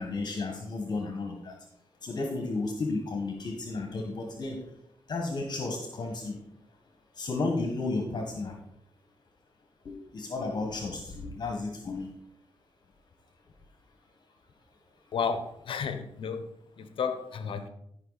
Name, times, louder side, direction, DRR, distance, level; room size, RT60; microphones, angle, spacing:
voice 1, 0.0-1.6 2.0-4.6 5.1-6.4 7.2-8.5 9.8-12.1, left 3 dB, 50° left, 1.7 m, -33 dB
voice 2, 15.1-16.5 16.8-17.7, left 6 dB, 70° left, 1.0 m, -32 dB
12.5 x 5.7 x 4.2 m
cardioid pair, 75°, 9 cm